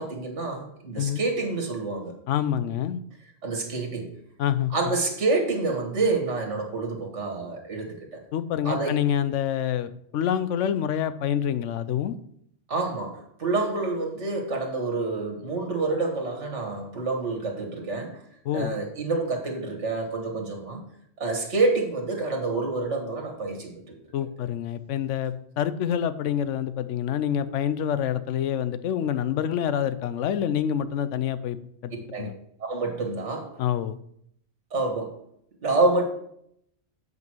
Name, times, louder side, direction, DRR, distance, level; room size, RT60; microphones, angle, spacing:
voice 1, 0.0-2.1 3.4-4.1 4.7-8.1 8.7-9.0 12.7-18.2 18.5-20.8 21.2-24.0 32.1-32.3 32.7-33.6 34.7-35.2 35.6-36.0, right 3 dB, 75° right, 2 dB, 1.9 m, -27 dB
voice 2, 2.3-3.0 4.4-4.7 8.3-12.2 18.4-18.7 24.1-31.6 31.8-31.9 32.2-32.3 33.6-34.0, left 9 dB, 85° left, 13 dB, 0.9 m, -27 dB
8.0 x 5.4 x 4.6 m, 0.71 s
omnidirectional pair, 1.2 m